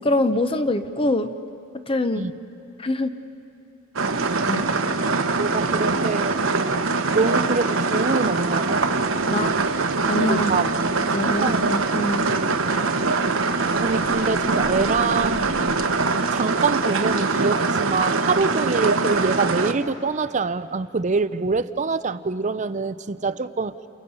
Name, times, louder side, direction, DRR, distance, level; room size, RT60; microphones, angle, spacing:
voice 1, 0.0-1.3 1.9-2.3 2.8-3.1 4.4-4.7 9.3-9.5 10.1-10.7 11.1-12.3 12.9-13.0, left 1 dB, 25° left, 9 dB, 0.7 m, -24 dB
sound 1, 4.0-19.7, right 3 dB, 65° right, 1.1 m, -23 dB
voice 2, 4.8-5.1 5.4-6.4 7.1-8.8 10.3-10.8 11.4-11.6 13.2-13.4 13.8-15.6 16.3-23.7, right 4 dB, 35° right, 14 dB, 0.5 m, -25 dB
sound 2, 8.7-15.9, left 1 dB, 75° left, 2.0 m, -43 dB
29.5 x 29.0 x 5.5 m, 2.7 s
head